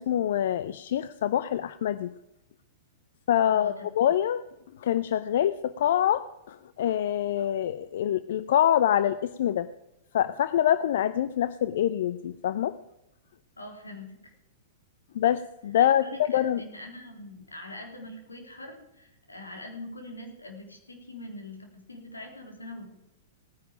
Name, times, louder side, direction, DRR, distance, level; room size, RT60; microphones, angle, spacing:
voice 1, 0.0-2.1 3.3-4.4 4.8-9.7 10.1-12.8 15.1-16.6, left 10 dB, 60° left, 15 dB, 0.5 m, -25 dB
voice 2, 3.5-3.9 13.6-14.3 15.8-23.0, left 1 dB, 90° left, 2 dB, 3.5 m, -43 dB
18.0 x 10.0 x 5.1 m, 0.88 s
figure-of-eight pair, 100°, 0 cm